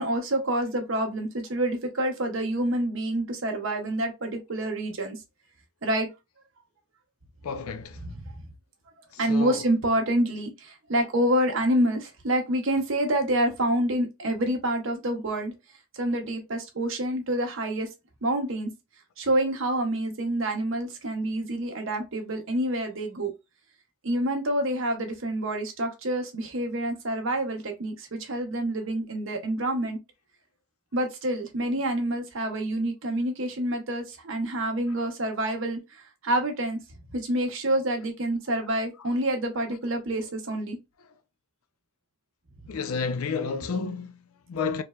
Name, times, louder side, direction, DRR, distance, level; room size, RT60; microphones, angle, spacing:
voice 1, 0.0-5.2 5.8-6.1 8.0-8.3 9.2-15.5 15.9-17.9 18.2-18.7 19.2-23.3 24.0-30.0 30.9-36.8 37.1-40.8 43.4-43.5, right 1 dB, 60° right, 0.8 m, -27 dB
voice 2, 7.4-8.0 9.1-9.7 34.5-34.6 35.0-35.1 39.7-39.8 42.7-44.8, left 5 dB, 80° left, 0.4 m, -31 dB
3.1 x 2.1 x 2.2 m
head